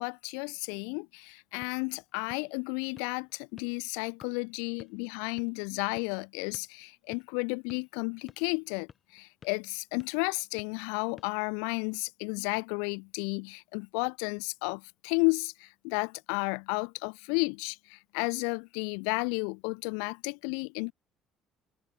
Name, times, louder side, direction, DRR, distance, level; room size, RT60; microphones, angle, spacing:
voice 1, 0.0-8.9 9.1-20.9, left 40 dB or more, 85° left, 0.3 m, -32 dB
sound 1, 1.3-12.1, left 7 dB, 40° left, 3.9 m, -58 dB
supercardioid pair, 75°, 0 cm